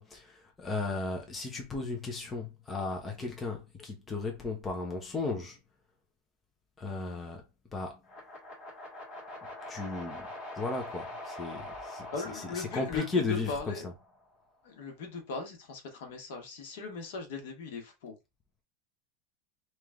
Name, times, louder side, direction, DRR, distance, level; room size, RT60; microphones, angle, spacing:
voice 1, 0.0-5.6 6.8-7.4 7.7-8.0 9.7-10.3 10.6-12.1 12.3-13.9, left 3 dB, 10° left, 0.7 m, -35 dB
sound 1, 8.0-14.2, left 1 dB, 30° left, 1.8 m, -44 dB
voice 2, 12.1-13.9 14.6-18.2, left 4 dB, 65° left, 1.3 m, -39 dB
3.3 x 3.0 x 3.6 m
supercardioid pair, 180°, 0 cm